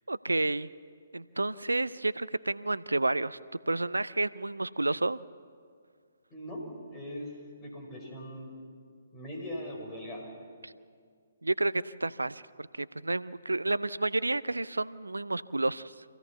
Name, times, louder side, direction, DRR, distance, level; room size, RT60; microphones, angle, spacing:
voice 1, 0.1-0.7 1.1-3.4 3.7-5.2 10.6-10.7 11.4-16.0, right 2 dB, 80° right, 18 dB, 0.4 m, -30 dB
voice 2, 6.3-8.6 9.1-10.3, equal, 20° left, -1 dB, 5.2 m, -40 dB
26.0 x 16.0 x 7.0 m, 2.1 s
figure-of-eight pair, 130°, 0 cm